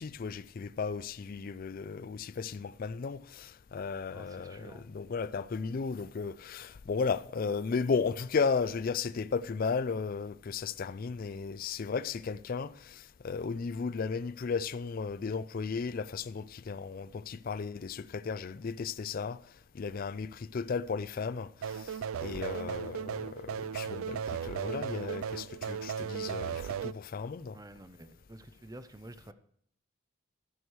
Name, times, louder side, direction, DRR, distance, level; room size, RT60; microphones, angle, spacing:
voice 1, 0.0-19.4 19.7-27.6, left 5 dB, 45° left, 0.4 m, -35 dB
voice 2, 4.1-4.8 27.5-29.3, right 1 dB, 15° right, 0.5 m, -49 dB
sound 1, 21.6-26.9, right 7 dB, 75° right, 0.3 m, -36 dB
13.5 x 6.3 x 4.6 m
head